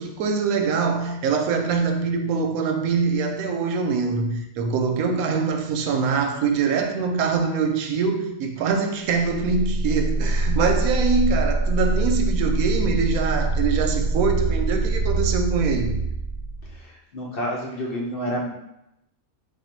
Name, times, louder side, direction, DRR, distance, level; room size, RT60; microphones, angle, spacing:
voice 1, 0.0-16.0, right 5 dB, 90° right, 1.0 m, -24 dB
sound 1, 9.2-16.8, right 2 dB, 75° left, 1.0 m, -24 dB
voice 2, 16.7-18.5, equal, 50° left, 0.8 m, -29 dB
3.5 x 2.4 x 4.4 m
omnidirectional pair, 1.4 m